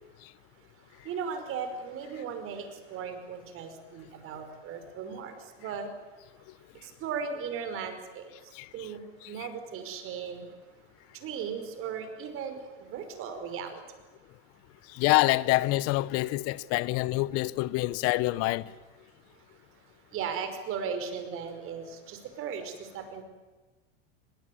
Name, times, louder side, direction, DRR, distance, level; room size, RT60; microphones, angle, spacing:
voice 1, 0.8-5.9 6.7-10.5 11.1-13.8 19.3-19.6 20.1-23.2, right 6 dB, 45° right, 5.5 m, -37 dB
voice 2, 14.9-18.7, left 19 dB, 50° left, 1.0 m, -26 dB
24.0 x 21.0 x 9.6 m
hypercardioid pair, 115°, 31 cm